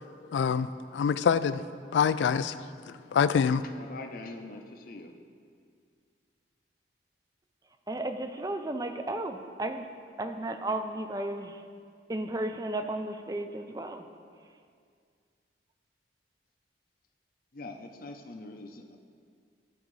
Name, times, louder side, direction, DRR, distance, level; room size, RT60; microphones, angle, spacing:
voice 1, 0.3-1.6 1.9-2.6 3.1-3.6, left 6 dB, 80° left, 14 dB, 0.3 m, -25 dB
voice 2, 3.8-5.1 17.5-19.0, left 2 dB, 50° left, 4 dB, 0.6 m, -43 dB
voice 3, 7.9-9.8 10.2-11.6 12.1-14.1, right 1 dB, 20° right, 7 dB, 0.4 m, -34 dB
14.0 x 4.9 x 3.2 m, 2.2 s
head